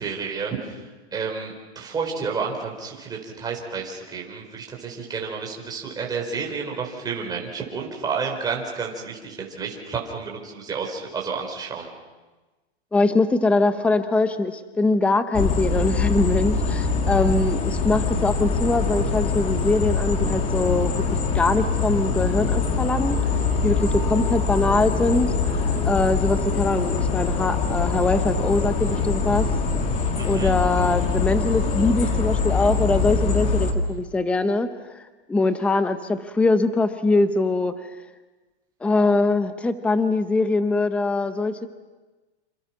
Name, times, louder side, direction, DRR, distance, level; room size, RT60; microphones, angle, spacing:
voice 1, 0.0-11.9 30.2-30.5, right 5 dB, 10° right, 0 dB, 4.5 m, -31 dB
voice 2, 12.9-21.0 21.3-23.2 23.6-25.3 25.8-29.5 30.2-34.7 35.3-37.7 38.8-41.7, left 3 dB, 5° left, 10 dB, 0.8 m, -22 dB
sound 1, 15.3-33.7, left 4 dB, 20° left, 2.4 m, -23 dB
27.5 x 27.5 x 6.0 m, 1.2 s
hypercardioid pair, 155°, 33 cm